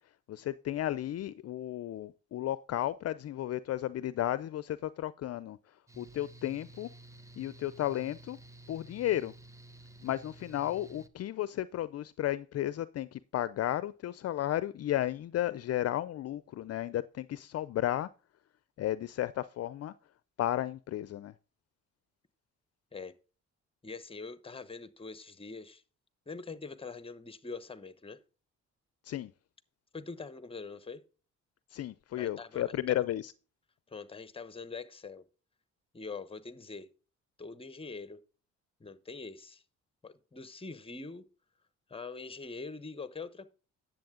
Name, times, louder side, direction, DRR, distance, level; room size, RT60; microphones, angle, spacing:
voice 1, 0.3-6.9 7.4-8.4 8.7-9.3 10.0-18.1 18.8-19.9 20.4-21.3 29.0-29.3 31.7-33.3, left 13 dB, 55° left, 0.5 m, -33 dB
Mechanical fan, 5.9-11.1, right 2 dB, 10° right, 0.8 m, -53 dB
voice 2, 23.8-25.8 26.3-28.2 29.9-31.0 32.2-33.0 33.9-35.2 35.9-36.9 37.4-38.2 38.8-39.6 40.0-41.2 41.9-43.5, left 4 dB, 20° left, 1.0 m, -43 dB
10.5 x 7.6 x 3.7 m
cardioid pair, 90°, 30 cm